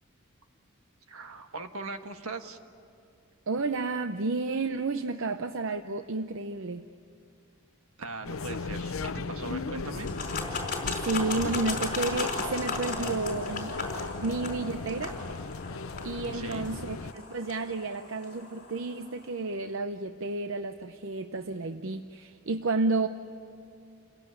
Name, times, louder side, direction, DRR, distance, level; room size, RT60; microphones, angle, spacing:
voice 1, 1.1-2.6 8.0-10.1 16.3-16.6, right 3 dB, 80° right, 6 dB, 1.6 m, -39 dB
voice 2, 3.5-6.8 11.0-13.8 14.2-15.2 16.0-23.1, right 3 dB, 65° right, 9 dB, 0.7 m, -31 dB
sound 1, 8.2-17.1, left 3 dB, 65° left, 0.7 m, -37 dB
sound 2, 10.0-19.1, left 3 dB, 40° left, 4.7 m, -36 dB
29.0 x 17.5 x 10.0 m, 2.6 s
head